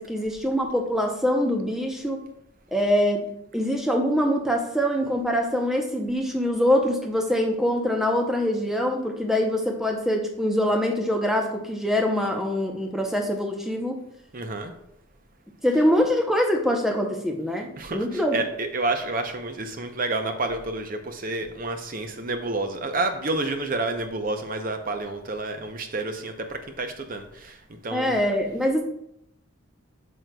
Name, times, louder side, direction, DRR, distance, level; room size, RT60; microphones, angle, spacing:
voice 1, 0.0-2.2 2.7-3.2 3.5-14.0 15.6-18.4 27.9-28.8, equal, ahead, 1 dB, 0.7 m, -24 dB
voice 2, 14.3-14.7 17.8-28.1, right 2 dB, 40° right, 6 dB, 0.7 m, -29 dB
8.9 x 6.3 x 2.3 m, 0.77 s
head